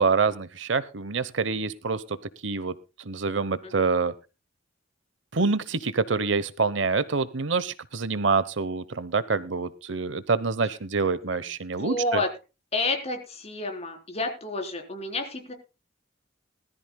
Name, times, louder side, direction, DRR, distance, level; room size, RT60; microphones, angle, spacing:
voice 1, 0.0-2.2 2.4-2.7 3.0-4.1 5.3-12.2, right 4 dB, 75° right, 17 dB, 0.9 m, -26 dB
voice 2, 11.8-12.3 12.7-15.5, left 2 dB, 35° left, 4 dB, 3.8 m, -29 dB
20.0 x 13.5 x 2.2 m, 0.30 s
head